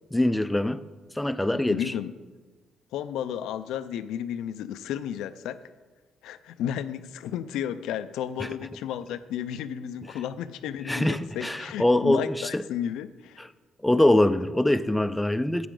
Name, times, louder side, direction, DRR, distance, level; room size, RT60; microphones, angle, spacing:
voice 1, 0.1-0.8 1.2-1.9 8.4-8.5 10.9-12.6 13.4-13.5 13.8-15.7, left 1 dB, 5° left, 13 dB, 0.4 m, -23 dB
voice 2, 1.7-2.1 2.9-5.6 6.2-13.4, left 9 dB, 90° left, 13 dB, 0.4 m, -33 dB
12.0 x 8.4 x 3.8 m, 1.3 s
cardioid pair, 90°, 0 cm